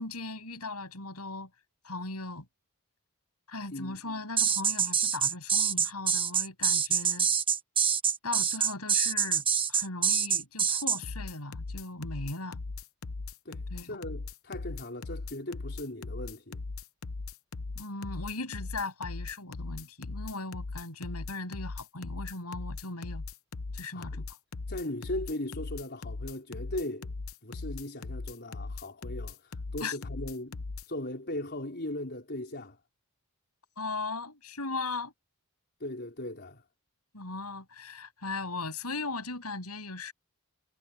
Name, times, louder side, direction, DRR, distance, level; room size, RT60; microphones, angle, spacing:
voice 1, 0.0-1.5 1.8-2.5 3.5-7.3 8.2-12.6 13.7-14.0 17.7-23.2 23.7-24.3 29.8-30.0 33.8-35.1 37.1-40.1, left 3 dB, 90° left, 7.9 m, -38 dB
sound 1, 4.4-11.0, right 7 dB, 25° right, 1.3 m, -26 dB
sound 2, 11.0-30.9, left 3 dB, 70° left, 0.8 m, -39 dB
voice 2, 13.4-16.6 23.9-24.3 24.7-27.1 27.4-30.6 30.9-32.8 35.8-36.6, left 1 dB, 50° left, 4.3 m, -38 dB
head